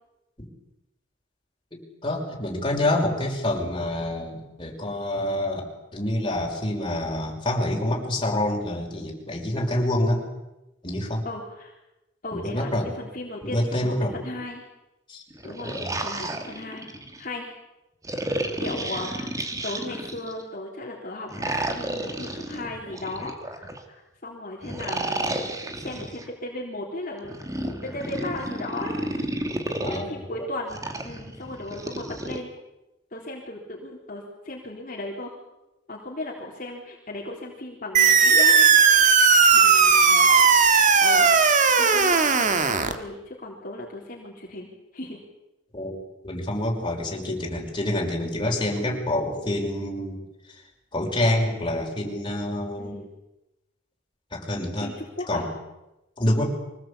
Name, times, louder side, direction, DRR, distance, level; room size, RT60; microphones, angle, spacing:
voice 1, 1.7-10.2 10.8-11.2 12.3-12.9 13.4-14.1 15.1-15.2 15.6-16.0 29.8-30.5 45.7-46.0 46.2-50.2 50.9-52.9 54.3-54.9 55.3-55.5 56.2-56.4, left 1 dB, 25° left, -1 dB, 5.7 m, -27 dB
voice 2, 11.2-11.8 12.2-14.6 15.4-16.9 17.2-17.5 18.6-19.3 19.6-24.0 24.2-25.5 25.8-29.0 29.9-32.5 33.1-35.3 35.9-38.7 39.5-40.7 41.0-41.3 41.8-45.2 52.8-53.1 54.8-55.4, left 2 dB, 45° left, -3 dB, 3.9 m, -36 dB
sound 1, 15.3-17.2 18.0-20.4 21.3-23.8 24.6-26.2 27.2-30.0 30.7-32.4, right 1 dB, 15° right, 2.5 m, -32 dB
sound 2, 37.9-42.9, right 5 dB, 40° right, 1.9 m, -17 dB
25.0 x 19.0 x 8.6 m, 0.97 s
head